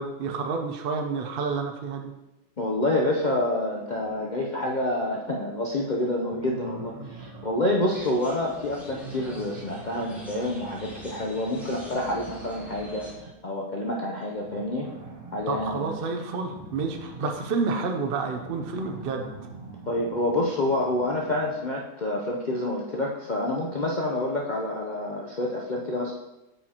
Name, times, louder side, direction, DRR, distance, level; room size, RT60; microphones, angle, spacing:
voice 1, 0.0-2.1 15.5-19.3, right 4 dB, 75° right, 4 dB, 0.5 m, -29 dB
voice 2, 2.6-14.9 15.3-15.9 19.9-26.1, left 1 dB, 65° left, -2 dB, 0.4 m, -28 dB
sound 1, 3.9-5.6 6.2-13.4 14.3-21.8, right 3 dB, 45° right, 1.6 m, -45 dB
sound 2, 7.8-13.1, left 1 dB, ahead, 2.2 m, -45 dB
8.8 x 6.8 x 2.9 m, 0.97 s
omnidirectional pair, 1.9 m